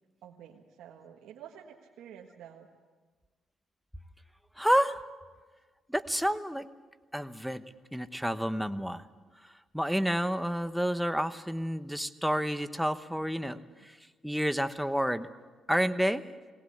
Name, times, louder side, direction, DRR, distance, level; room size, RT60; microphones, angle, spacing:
voice 1, 0.2-2.7 13.7-13.9, right 9 dB, 85° right, -1 dB, 1.6 m, -50 dB
voice 2, 4.6-5.0 5.9-6.7 7.1-7.6 7.9-9.1 9.7-14.0 14.2-15.3 15.7-16.2, equal, ahead, 10 dB, 1.0 m, -29 dB
20.5 x 18.0 x 8.5 m, 1.4 s
cardioid pair, 90°, 0 cm